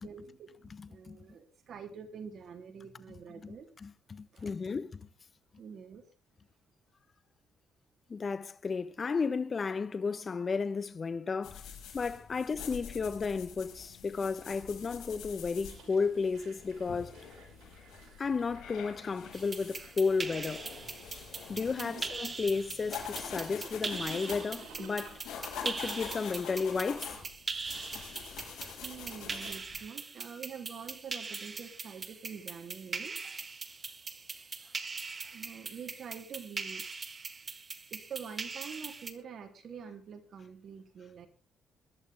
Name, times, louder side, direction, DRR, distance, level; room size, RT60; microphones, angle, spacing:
voice 1, 0.0-3.7 4.3-4.5 5.6-6.0 21.8-22.0 28.8-33.5 35.3-36.9 37.9-41.3, right 7 dB, 60° right, 3.4 m, -46 dB
voice 2, 0.7-1.2 3.4-3.6 3.8-5.1 8.1-11.7 11.9-17.1 18.2-20.7 21.1-25.2 25.6-27.2, left 5 dB, 35° left, 1.2 m, -33 dB
sound 1, 11.4-29.8, left 7 dB, 80° left, 6.7 m, -46 dB
sound 2, 15.7-35.5, right 6 dB, 80° right, 5.5 m, -61 dB
sound 3, 19.3-39.1, right 4 dB, 30° right, 1.7 m, -41 dB
22.0 x 11.5 x 3.6 m
cardioid pair, 90°, 0 cm